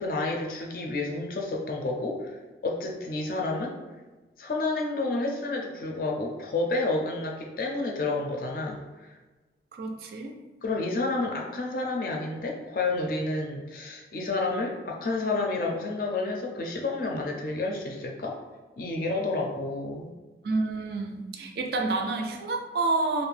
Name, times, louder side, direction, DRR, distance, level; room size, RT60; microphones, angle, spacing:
voice 1, 0.0-2.3 2.6-3.8 4.4-9.2 10.6-18.4 18.8-20.1, left 2 dB, 50° left, 0 dB, 0.4 m, -30 dB
voice 2, 9.7-10.3 20.4-23.3, right 3 dB, 60° right, 3 dB, 0.3 m, -29 dB
2.4 x 2.0 x 3.2 m, 1.2 s
head